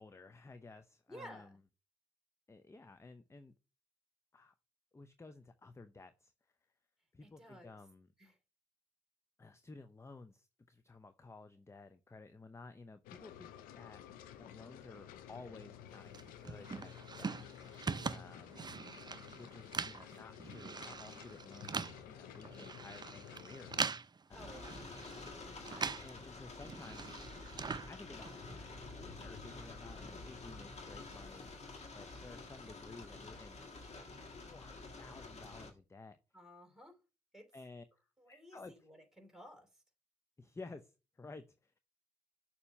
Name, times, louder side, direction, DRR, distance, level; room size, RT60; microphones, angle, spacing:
voice 1, 0.0-1.6 2.5-3.5 4.3-4.5 4.9-6.3 7.1-8.1 9.4-14.0 14.4-17.4 18.0-18.6 19.4-23.7 24.3-24.7 25.7-27.5 27.9-31.5 31.9-33.6 34.4-36.2 37.5-37.8 38.3-38.9 40.4-41.8, left 3 dB, 20° left, 0.6 m, -54 dB
voice 2, 1.1-1.5 7.2-7.8 8.2-8.4 24.3-24.8 36.3-37.0 37.3-37.5 38.2-39.7, equal, 5° right, 2.9 m, -54 dB
sound 1, 13.0-23.8, left 10 dB, 80° left, 0.6 m, -53 dB
sound 2, 16.1-26.2 26.4-28.5, right 5 dB, 30° right, 0.5 m, -42 dB
sound 3, 24.3-35.7, left 3 dB, 50° left, 1.6 m, -49 dB
6.8 x 2.9 x 5.5 m
hypercardioid pair, 40°, 15 cm